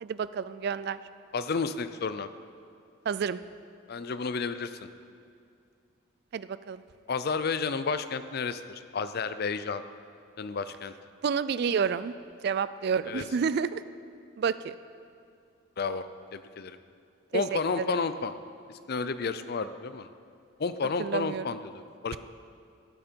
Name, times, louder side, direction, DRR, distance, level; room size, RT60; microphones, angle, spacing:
voice 1, 0.0-1.0 3.1-3.4 6.3-6.8 11.2-12.1 12.4-13.8 14.4-14.8 17.3-18.0 21.0-21.6, right 6 dB, 50° right, 15 dB, 0.3 m, -29 dB
voice 2, 1.3-2.3 3.9-4.8 7.1-9.8 10.4-10.9 13.1-13.2 15.8-16.0 16.3-16.8 17.3-18.3 18.9-20.1 20.6-22.2, left 4 dB, 50° left, 12 dB, 0.5 m, -31 dB
13.5 x 8.8 x 4.5 m, 2.4 s
head